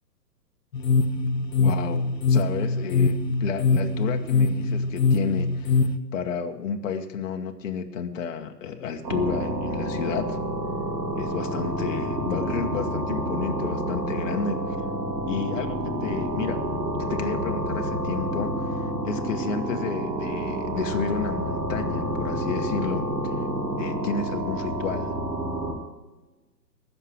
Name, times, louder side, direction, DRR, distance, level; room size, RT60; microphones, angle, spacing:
sound 1, 0.7-6.0, left 4 dB, 80° left, 1.1 m, -23 dB
voice 1, 1.6-5.8 6.1-10.4 11.2-14.6 15.3-16.7 17.0-23.3 23.8-25.2, left 6 dB, 50° left, 5 dB, 1.3 m, -31 dB
sound 2, 9.0-25.8, right 1 dB, 85° right, 2.9 m, -29 dB
15.0 x 6.8 x 6.2 m, 1.1 s
hypercardioid pair, 135°, 49 cm